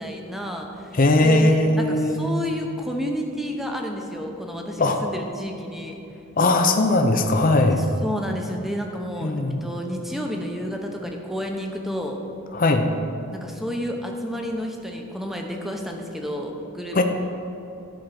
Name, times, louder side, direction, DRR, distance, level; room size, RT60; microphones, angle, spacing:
voice 1, 0.0-6.0 7.8-12.2 13.3-17.0, equal, ahead, 2 dB, 0.8 m, -30 dB
voice 2, 0.9-2.3 4.8-5.0 6.4-7.8 9.2-9.7 12.5-12.9 16.9-17.0, left 2 dB, 40° left, 5 dB, 0.6 m, -19 dB
12.0 x 5.1 x 5.9 m, 2.8 s
head